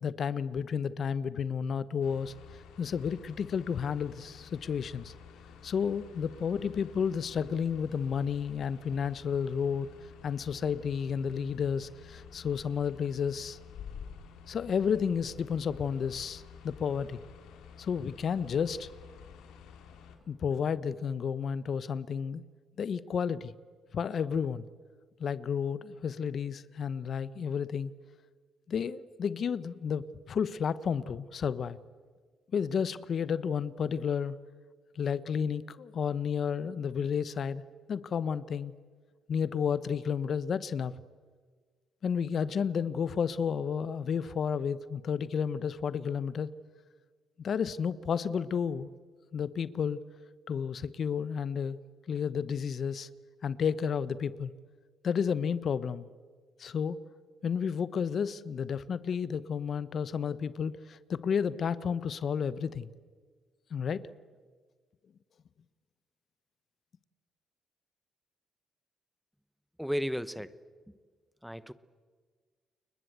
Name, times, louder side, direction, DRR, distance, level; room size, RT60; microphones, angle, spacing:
voice 1, 0.0-2.3 2.8-5.1 5.6-9.9 10.2-13.6 14.5-17.2 17.8-18.9 20.3-22.4 22.8-23.5 23.9-24.6 25.2-27.9 28.7-31.8 32.5-34.4 35.0-37.6 37.9-38.7 39.3-40.9 42.0-46.5 47.4-48.9 49.3-50.0 50.5-51.8 52.1-53.1 53.4-54.5 55.0-56.1 56.6-57.0 57.4-62.9 63.7-64.1, left 7 dB, 55° left, 17 dB, 0.9 m, -31 dB
sound 1, 2.0-20.2, left 7 dB, 90° left, 3.0 m, -51 dB
voice 2, 69.8-70.5 71.4-71.7, equal, ahead, 16 dB, 0.9 m, -33 dB
30.0 x 21.5 x 8.0 m, 1.5 s
cardioid pair, 90°, 0 cm